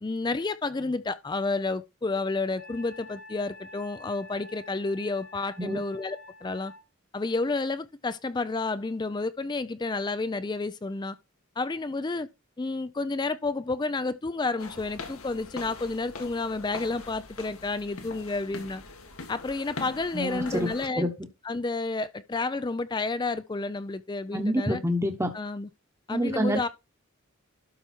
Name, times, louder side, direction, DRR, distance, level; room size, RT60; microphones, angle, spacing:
voice 1, 0.0-6.7 7.1-11.2 11.6-12.3 12.6-18.8 19.3-21.1 21.4-24.8 25.3-25.7 26.1-26.7, left 3 dB, 20° left, 0.4 m, -30 dB
Wind instrument woodwind instrument, 2.6-6.8, left 2 dB, 45° left, 1.5 m, -48 dB
sound 1, 14.6-20.9, left 3 dB, 85° left, 1.8 m, -42 dB
voice 2, 20.1-20.7 21.0-21.1 24.3-25.3 26.1-26.7, equal, 15° right, 1.1 m, -27 dB
12.0 x 4.7 x 4.4 m
head